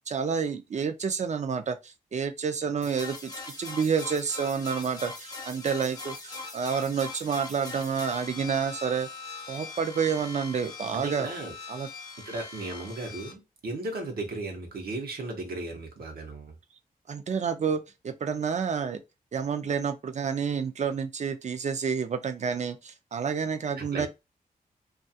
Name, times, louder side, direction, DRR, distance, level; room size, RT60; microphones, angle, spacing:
voice 1, 0.1-3.3 3.6-9.1 9.5-11.3 11.7-11.9 17.1-19.0 19.3-24.1, right 6 dB, 50° right, 0.4 m, -29 dB
sound 1, 2.8-13.3, left 3 dB, 25° left, 0.7 m, -41 dB
voice 2, 10.9-11.5 12.3-16.5 23.8-24.1, right 2 dB, 80° right, 0.8 m, -36 dB
2.3 x 2.3 x 2.7 m
wide cardioid pair, 85°, 15 cm